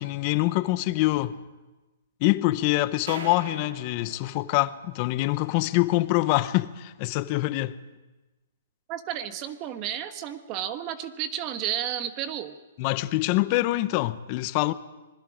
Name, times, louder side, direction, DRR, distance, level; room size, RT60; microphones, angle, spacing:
voice 1, 0.0-1.4 2.2-7.8 12.8-14.7, left 18 dB, 30° left, 0.7 m, -25 dB
sound 1, 3.1-5.4, right 5 dB, 85° right, 2.9 m, -43 dB
voice 2, 8.9-12.6, right 10 dB, 25° right, 1.2 m, -32 dB
26.0 x 21.0 x 5.0 m
hypercardioid pair, 165°, 0 cm